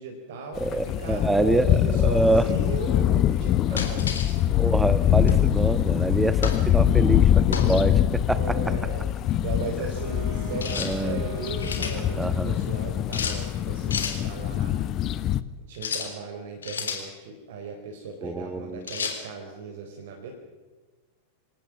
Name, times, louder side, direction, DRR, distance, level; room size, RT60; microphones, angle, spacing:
voice 1, 0.0-4.1 8.3-14.8 15.7-20.3, right 3 dB, 55° right, 2 dB, 4.1 m, -37 dB
sound 1, 0.6-15.4, left 11 dB, 35° left, 1.0 m, -24 dB
voice 2, 0.6-2.4 4.5-8.6 10.8-11.2 12.2-12.6 18.2-18.9, right 2 dB, 5° right, 14 dB, 1.3 m, -26 dB
sound 2, 3.8-4.3 5.3-5.5 6.4-6.6 7.5-7.8 10.6-10.9 11.4-12.0 13.1-13.4 13.9-14.2 15.7-16.1 16.6-17.1 18.9-19.2, left 6 dB, 70° left, 3.8 m, -30 dB
Wind instrument woodwind instrument, 9.8-12.8, right 8 dB, 40° right, 2.8 m, -41 dB
27.0 x 18.0 x 7.3 m, 1.3 s
figure-of-eight pair, 90°, 0 cm